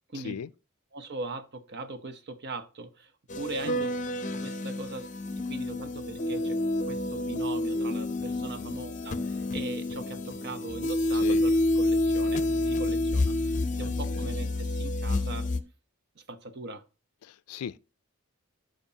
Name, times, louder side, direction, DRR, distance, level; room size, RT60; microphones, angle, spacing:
voice 1, 0.1-0.5 3.6-3.8 8.6-8.8 11.2-11.4 13.8-14.3 17.2-17.8, left 7 dB, 80° left, 0.4 m, -39 dB
voice 2, 0.9-3.9 4.3-5.1 5.5-6.6 6.9-13.3 13.7-15.5 16.2-16.8, right 2 dB, 50° right, 0.8 m, -40 dB
sound 1, 3.3-15.6, left 1 dB, 35° left, 0.6 m, -29 dB
12.5 x 5.2 x 2.8 m
head